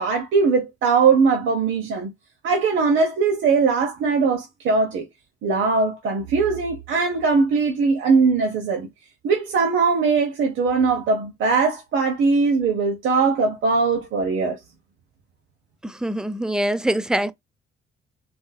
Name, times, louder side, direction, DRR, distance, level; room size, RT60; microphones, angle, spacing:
voice 1, 0.0-2.1 2.4-5.0 5.4-8.9 9.2-14.6, right 4 dB, 75° right, 0.9 m, -20 dB
voice 2, 15.8-17.3, right 1 dB, 5° right, 0.3 m, -24 dB
3.8 x 2.6 x 2.3 m
cardioid pair, 90°, 20 cm